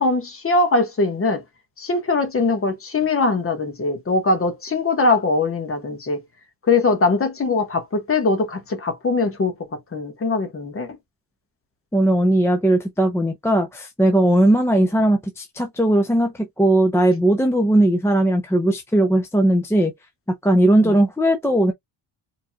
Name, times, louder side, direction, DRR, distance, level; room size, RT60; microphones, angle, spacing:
voice 1, 0.0-1.4 1.8-6.2 6.7-11.0 14.8-14.9 20.8-21.0, left 3 dB, 30° left, 1.5 m, -21 dB
voice 2, 11.9-19.9 20.4-21.7, right 1 dB, 5° left, 0.7 m, -18 dB
4.6 x 3.8 x 2.3 m
wide cardioid pair, 155°, 43 cm